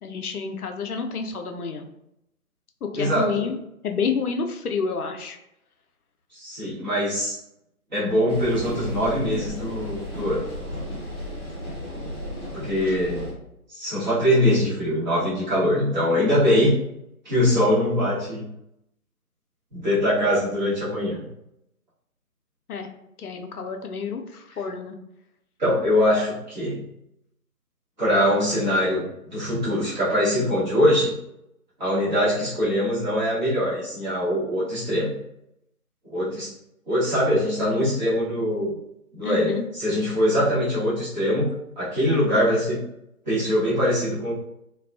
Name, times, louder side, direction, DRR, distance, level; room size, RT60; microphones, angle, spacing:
voice 1, 0.0-1.9 2.8-3.6 3.8-5.4 12.9-13.0 22.7-22.9 23.2-25.0 39.2-39.7, left 5 dB, 80° left, 4 dB, 0.5 m, -29 dB
voice 2, 3.0-3.5 6.3-7.3 7.9-10.4 12.5-13.3 13.7-16.8 17.2-18.5 19.7-21.2 25.6-26.8 28.0-31.1 31.8-35.2 36.0-36.5 36.9-38.8 39.1-42.8 43.3-44.3, equal, 30° right, -10 dB, 1.0 m, -23 dB
sound 1, 8.3-13.3, left 1 dB, 20° left, 0.8 m, -34 dB
2.3 x 2.2 x 2.4 m, 0.81 s
figure-of-eight pair, 150°, 44 cm